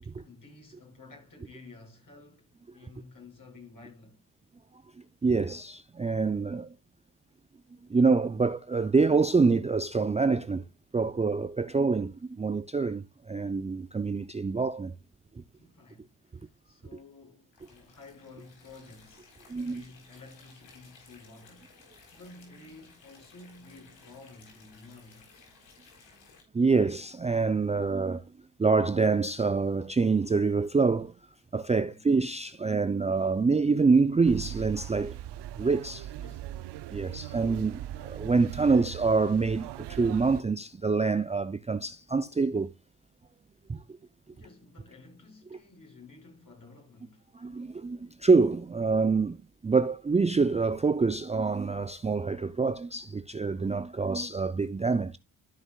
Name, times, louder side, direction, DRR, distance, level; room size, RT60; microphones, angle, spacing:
voice 1, 0.0-4.3 15.5-25.5 31.7-32.0 36.2-36.6 44.3-47.3, left 3 dB, 45° left, 6.1 m, -52 dB
voice 2, 5.2-6.7 7.9-10.6 10.9-14.9 19.5-19.8 26.5-28.2 28.6-31.1 31.5-35.2 35.6-36.1 36.9-42.7 43.7-44.0 47.3-49.4 49.6-55.2, right 4 dB, 15° right, 0.5 m, -26 dB
sound 1, 17.5-26.4, left 4 dB, 75° left, 4.1 m, -57 dB
sound 2, 34.3-40.4, right 13 dB, 65° right, 0.7 m, -40 dB
13.5 x 6.5 x 2.4 m
hypercardioid pair, 45°, 45 cm